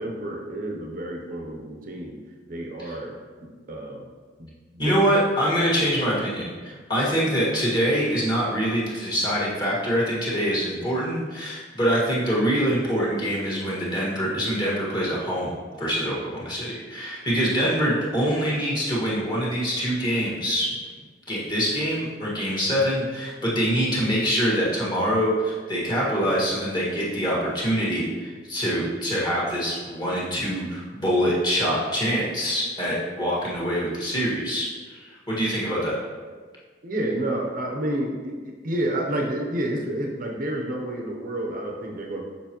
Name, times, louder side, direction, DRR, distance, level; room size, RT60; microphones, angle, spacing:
voice 1, 0.0-2.2 2.5-3.2 3.4-4.1 4.4-4.9 36.8-42.2, right 1 dB, 50° right, 0 dB, 0.8 m, -30 dB
voice 2, 4.8-15.5 15.8-20.7 21.3-36.0, equal, 25° left, -6 dB, 1.7 m, -24 dB
7.0 x 5.4 x 3.0 m, 1.5 s
head